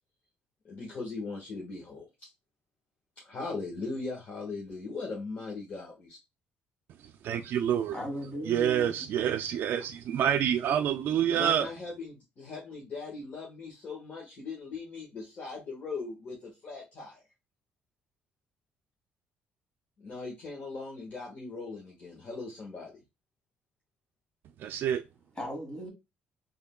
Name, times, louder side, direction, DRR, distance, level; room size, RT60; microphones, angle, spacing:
voice 1, 0.7-2.3 3.2-6.2 11.3-17.2 20.0-23.0, left 3 dB, 45° left, 1.4 m, -39 dB
voice 2, 7.2-8.0 8.5-11.7 24.6-25.0, right 9 dB, 65° right, 0.3 m, -27 dB
voice 3, 7.9-8.9 25.4-25.9, equal, 20° left, 2.2 m, -36 dB
3.6 x 3.5 x 2.2 m
cardioid pair, 100°, 4 cm